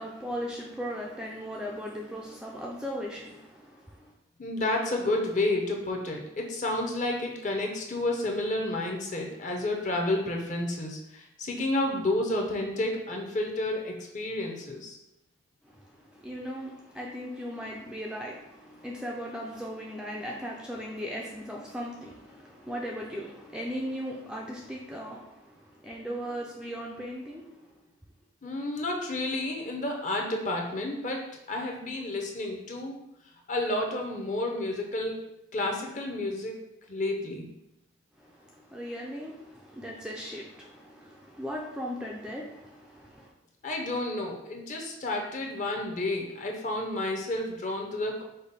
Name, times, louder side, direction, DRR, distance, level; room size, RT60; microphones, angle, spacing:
voice 1, 0.0-4.1 15.6-27.8 38.2-43.3, equal, 5° right, -2 dB, 0.3 m, -38 dB
voice 2, 4.4-15.0 28.4-31.2 31.5-33.0 33.5-35.2 35.5-36.6 36.9-37.5 43.6-48.2, left 2 dB, 40° left, 1 dB, 0.7 m, -30 dB
5.0 x 2.2 x 4.0 m, 0.85 s
head